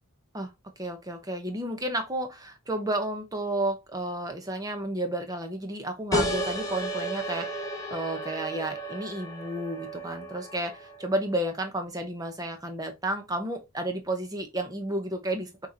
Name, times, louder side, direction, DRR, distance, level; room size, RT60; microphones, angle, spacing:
voice 1, 0.3-15.7, right 1 dB, 15° right, 0.9 m, -32 dB
sound 1, 6.1-11.3, equal, 15° left, 0.9 m, -33 dB
6.1 x 3.1 x 2.8 m
head